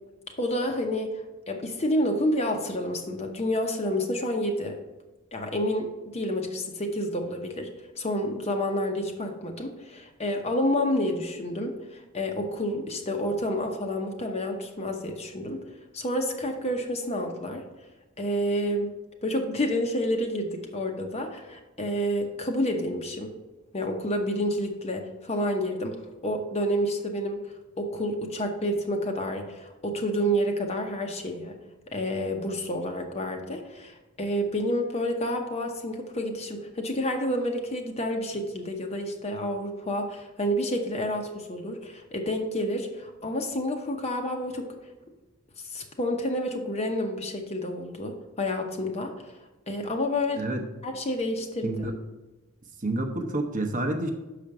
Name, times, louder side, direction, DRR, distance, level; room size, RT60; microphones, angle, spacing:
voice 1, 0.4-4.8 5.3-7.7 8.0-15.6 15.9-17.6 18.2-18.9 19.2-23.3 23.7-27.5 27.8-31.6 31.9-44.7 45.6-49.1 49.7-50.4 50.8-51.7, equal, 30° left, 3 dB, 0.8 m, -29 dB
voice 2, 51.6-51.9 52.8-54.1, right 2 dB, 35° right, 5 dB, 0.8 m, -28 dB
6.4 x 5.0 x 5.9 m, 1.1 s
head